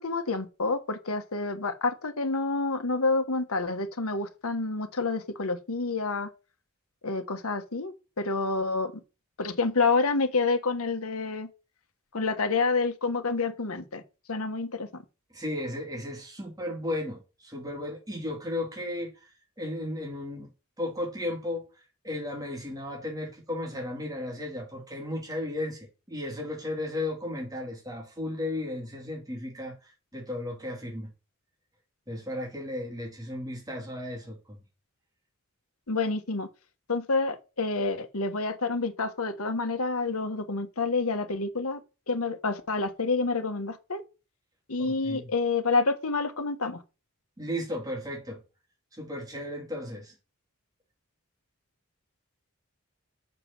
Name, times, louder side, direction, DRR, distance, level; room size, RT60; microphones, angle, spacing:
voice 1, 0.0-6.3 7.0-8.9 9.4-11.5 12.1-14.0 14.3-15.0 35.9-36.5 36.9-44.0 44.7-46.8, left 3 dB, 85° left, 1.3 m, -28 dB
voice 2, 15.3-19.1 19.6-20.5 20.8-21.6 22.0-31.1 32.1-34.6 44.8-45.3 47.4-48.4 48.9-50.1, left 1 dB, 15° right, 3.0 m, -35 dB
7.3 x 6.8 x 6.0 m
head